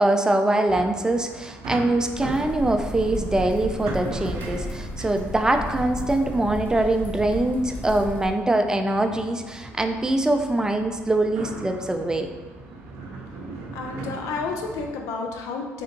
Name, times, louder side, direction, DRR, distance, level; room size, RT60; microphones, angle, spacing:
voice 1, 0.0-12.3, right 2 dB, 10° right, 6 dB, 0.3 m, -23 dB
sound 1, 0.7-14.9, right 3 dB, 85° right, 0.4 m, -39 dB
sound 2, 2.1-8.3, equal, 35° left, 0.8 m, -34 dB
voice 2, 13.7-15.8, left 4 dB, 75° left, 2 dB, 0.4 m, -31 dB
3.3 x 2.8 x 2.6 m, 1.3 s
supercardioid pair, 70°, 5 cm